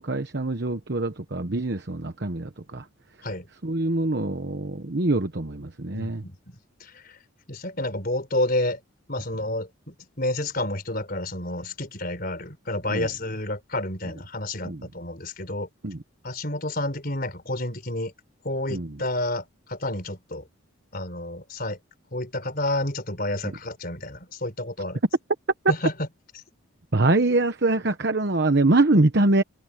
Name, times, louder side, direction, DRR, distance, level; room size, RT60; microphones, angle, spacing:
voice 1, 0.0-2.8 3.6-6.2 12.9-13.1 14.6-14.9 15.8-16.0 18.7-19.0 23.4-23.5 26.9-29.4, right 2 dB, 50° right, 1.1 m, -24 dB
voice 2, 5.9-7.2 7.5-8.8 9.1-15.7 16.2-18.1 18.4-20.4 20.9-21.8 22.1-25.0 25.7-25.9, left 1 dB, 45° left, 4.5 m, -30 dB
head